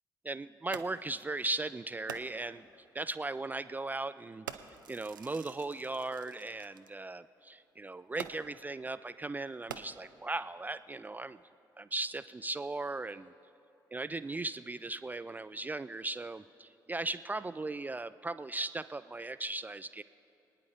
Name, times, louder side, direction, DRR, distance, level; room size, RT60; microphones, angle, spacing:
voice 1, 0.2-2.7 2.9-4.5 4.9-11.4 11.8-13.3 13.9-20.0, right 2 dB, 15° right, 14 dB, 0.3 m, -37 dB
Fireworks, 0.7-1.2 2.1-2.6 3.5-3.6 4.5-6.9 8.2-8.7 9.5-10.3 11.0-11.1, right 8 dB, 80° right, 0.4 m, -46 dB
25.5 x 9.6 x 3.9 m, 2.9 s
figure-of-eight pair, 45°, 11 cm